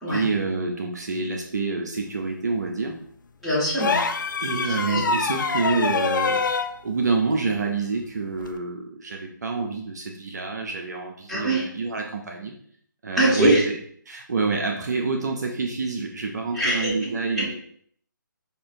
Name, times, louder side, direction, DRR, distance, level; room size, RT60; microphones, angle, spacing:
voice 1, 0.1-3.0 4.4-6.4 6.8-12.5 13.0-13.7 14.1-17.5, right 4 dB, 55° right, 2 dB, 0.5 m, -27 dB
voice 2, 3.4-4.0 4.8-5.0 11.3-11.6 13.1-13.6 16.5-16.9 17.4-17.5, right 1 dB, ahead, -12 dB, 1.4 m, -22 dB
sound 1, 3.8-6.7 8.4-8.6, left 4 dB, 70° left, 0.4 m, -25 dB
5.0 x 2.4 x 2.6 m, 0.63 s
figure-of-eight pair, 150°, 11 cm